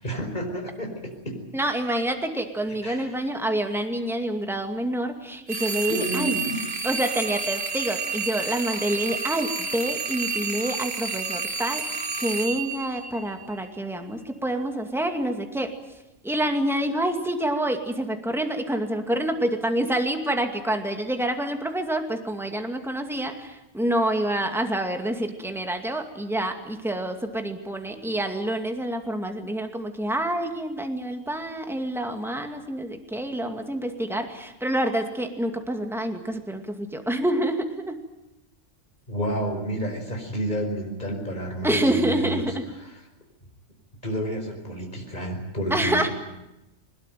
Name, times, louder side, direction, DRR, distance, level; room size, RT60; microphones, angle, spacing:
voice 1, 0.0-1.4 2.8-3.2 5.9-6.5 39.1-42.4 44.0-46.1, equal, 35° left, 2 dB, 5.2 m, -30 dB
voice 2, 1.5-6.4 6.8-15.7 16.2-38.0 41.6-42.7 45.7-46.1, right 1 dB, ahead, 5 dB, 2.2 m, -27 dB
sound 1, 5.5-13.7, right 5 dB, 55° right, 1.8 m, -30 dB
22.0 x 20.5 x 9.3 m, 0.94 s
omnidirectional pair, 1.3 m